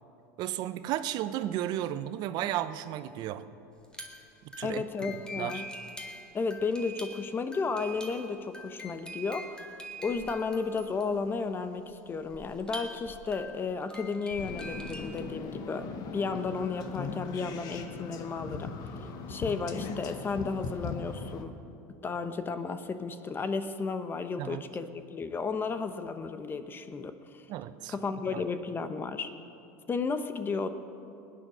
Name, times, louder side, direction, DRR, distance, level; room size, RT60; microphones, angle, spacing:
voice 1, 0.4-3.5 4.6-4.8 5.3-5.6 24.4-24.6 27.5-27.9 28.3-28.4, right 12 dB, 55° right, 12 dB, 0.8 m, -33 dB
sound 1, 3.8-15.3, left 1 dB, 10° left, 2.0 m, -44 dB
voice 2, 4.6-5.7 6.3-9.7 10.0-18.7 19.3-21.5 22.0-27.4 27.9-29.3 29.9-30.7, left 4 dB, 25° left, 10 dB, 0.9 m, -33 dB
sound 2, 14.4-21.4, left 4 dB, 50° left, 1.3 m, -39 dB
19.0 x 10.0 x 6.3 m, 2.7 s
supercardioid pair, 105°, 8 cm